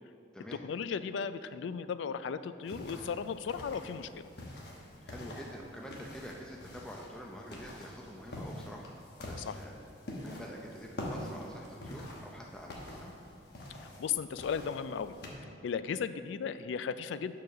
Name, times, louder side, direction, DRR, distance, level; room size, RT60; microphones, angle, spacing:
voice 1, 0.5-4.1 9.4-9.5 13.8-15.2 15.6-17.3, left 6 dB, 75° left, 13 dB, 0.3 m, -36 dB
sound 1, 2.7-15.3, left 1 dB, 55° left, 1.1 m, -45 dB
voice 2, 5.0-8.9 9.2-9.7 10.2-13.1, equal, 5° left, -1 dB, 0.5 m, -47 dB
7.0 x 4.8 x 6.0 m, 2.4 s
head